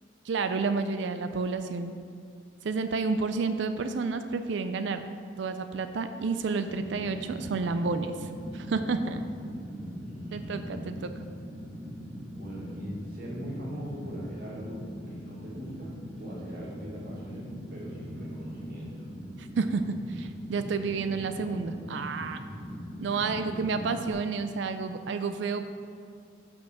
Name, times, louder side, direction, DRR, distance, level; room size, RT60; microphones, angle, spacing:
voice 1, 0.2-1.9 2.6-5.0 5.4-9.2 10.3-11.1 19.4-22.4 23.0-25.6, right 4 dB, 65° right, 9 dB, 0.4 m, -30 dB
Fire, 6.7-24.1, equal, ahead, 1.2 m, -41 dB
voice 2, 10.0-10.6 12.3-19.1 23.3-23.6, equal, 50° right, -5 dB, 2.1 m, -41 dB
6.1 x 5.9 x 6.5 m, 2.2 s
head